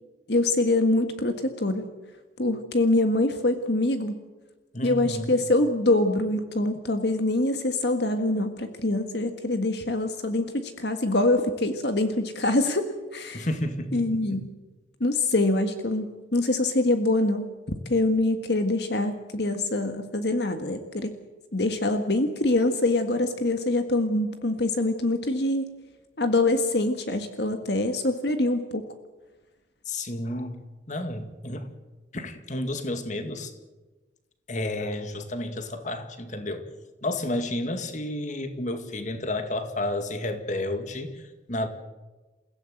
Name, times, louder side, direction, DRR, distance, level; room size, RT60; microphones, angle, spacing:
voice 1, 0.3-1.8 2.4-4.1 4.8-13.5 13.9-14.5 15.0-17.5 17.9-21.1 21.5-25.7 26.2-28.9, left 2 dB, 60° left, 7 dB, 1.7 m, -24 dB
voice 2, 4.7-5.3 13.3-14.4 29.9-30.6 30.9-31.7 32.1-33.5 34.5-36.7 37.0-41.7, left 1 dB, 40° left, 8 dB, 2.1 m, -31 dB
29.0 x 16.5 x 7.9 m, 1.2 s
head